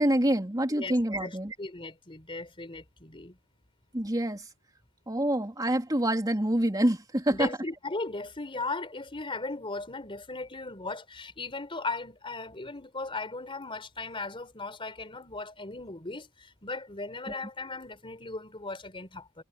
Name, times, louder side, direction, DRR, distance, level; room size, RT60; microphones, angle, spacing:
voice 1, 0.0-1.5 3.9-4.4 5.1-7.5 17.3-17.4, right 1 dB, 20° right, 3.2 m, -26 dB
voice 2, 0.7-3.4 7.3-19.4, left 3 dB, 25° left, 4.4 m, -37 dB
head